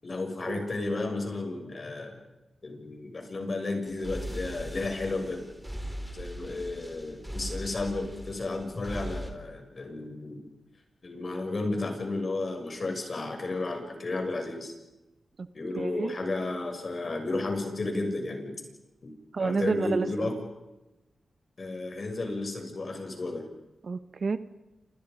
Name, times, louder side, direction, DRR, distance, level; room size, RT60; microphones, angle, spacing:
voice 1, 0.0-2.2 2.6-5.4 6.1-10.4 11.0-14.7 15.5-18.6 19.4-20.5 21.6-23.5, left 2 dB, 45° left, 4 dB, 6.8 m, -33 dB
sound 1, 3.9-9.3, equal, 5° right, 4.4 m, -39 dB
voice 2, 15.7-16.1 19.3-20.1 23.8-24.4, right 4 dB, 55° right, 11 dB, 1.3 m, -29 dB
29.0 x 27.5 x 5.4 m, 0.98 s
cardioid pair, 70°, 0 cm